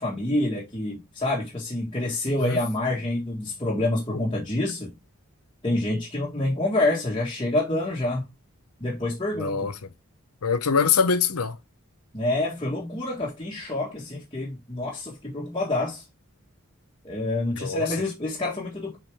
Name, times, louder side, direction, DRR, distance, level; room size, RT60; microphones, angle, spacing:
voice 1, 0.0-4.9 5.6-8.3 8.8-9.7 12.1-16.1 17.0-19.0, left 2 dB, 20° left, 1.7 m, -27 dB
voice 2, 9.4-9.7 10.4-11.6 17.6-17.9, left 5 dB, 90° left, 0.9 m, -23 dB
6.5 x 4.8 x 3.5 m
head